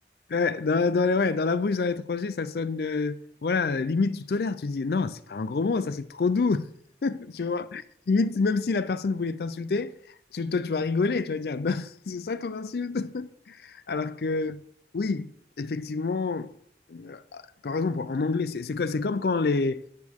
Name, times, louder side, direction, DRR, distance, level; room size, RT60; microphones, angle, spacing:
voice 1, 0.3-6.7 7.0-10.0 10.3-14.6 14.9-15.3 15.6-16.5 16.9-19.8, left 4 dB, 60° left, 0.4 m, -27 dB
10.5 x 8.5 x 3.6 m
head